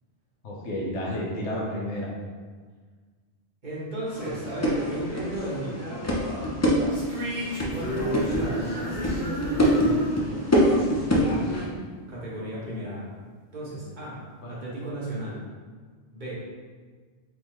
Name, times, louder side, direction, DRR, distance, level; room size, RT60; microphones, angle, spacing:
voice 1, 0.4-2.1 8.3-8.5 14.4-14.5, left 1 dB, 85° left, -3 dB, 1.2 m, -31 dB
voice 2, 3.6-5.8 7.7-11.7 12.1-13.1 13.5-15.4 16.1-16.3, right 1 dB, 45° right, -7 dB, 1.3 m, -35 dB
sound 1, 4.1-11.7, equal, 25° left, 0.4 m, -26 dB
sound 2, 6.9-12.3, equal, 75° right, 1.6 m, -32 dB
3.9 x 3.6 x 3.1 m, 1.5 s
omnidirectional pair, 1.1 m